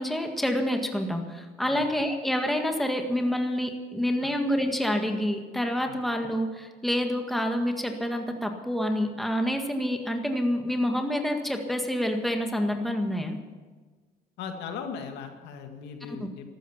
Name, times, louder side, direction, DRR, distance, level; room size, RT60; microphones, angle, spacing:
voice 1, 0.0-13.4 16.1-16.2, equal, ahead, 4 dB, 1.8 m, -28 dB
voice 2, 14.4-16.5, left 6 dB, 85° left, 5 dB, 1.9 m, -38 dB
14.0 x 13.0 x 7.2 m, 1.4 s
cardioid pair, 110°, 17 cm